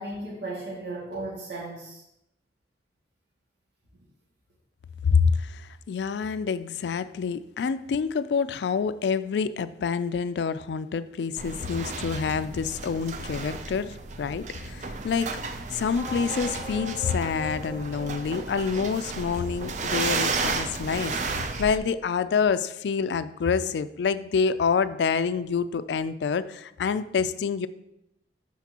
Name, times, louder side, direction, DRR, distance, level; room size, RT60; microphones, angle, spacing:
voice 1, 0.0-2.0, right 2 dB, 75° right, -5 dB, 2.0 m, -35 dB
voice 2, 5.0-15.4 15.7-27.7, left 5 dB, 75° left, 14 dB, 0.3 m, -27 dB
sound 1, 11.4-21.8, right 4 dB, 40° right, 0.5 m, -33 dB
sound 2, 16.0-20.9, right 1 dB, ahead, 2.0 m, -42 dB
12.0 x 4.4 x 2.9 m, 0.84 s
head